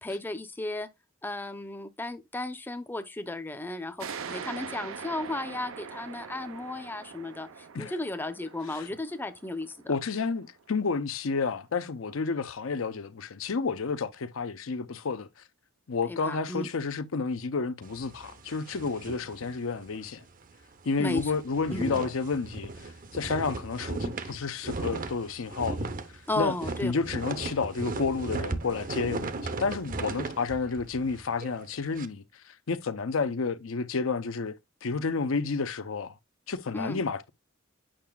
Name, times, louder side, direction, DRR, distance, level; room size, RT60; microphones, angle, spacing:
voice 1, 0.0-0.9 1.2-9.9 16.1-16.7 21.0-21.3 21.7-22.0 26.3-26.9 36.7-37.0, left 2 dB, 10° left, 0.6 m, -34 dB
sound 1, 4.0-11.2, right 6 dB, 90° right, 0.6 m, -43 dB
voice 2, 9.9-15.3 15.9-20.2 20.9-25.9 26.4-26.5 26.8-34.5 34.8-36.1 36.5-37.3, left 4 dB, 90° left, 0.6 m, -30 dB
sound 2, 17.8-20.1 20.4-20.6 20.9-32.1, right 3 dB, 45° right, 0.7 m, -37 dB
8.8 x 5.8 x 2.3 m
head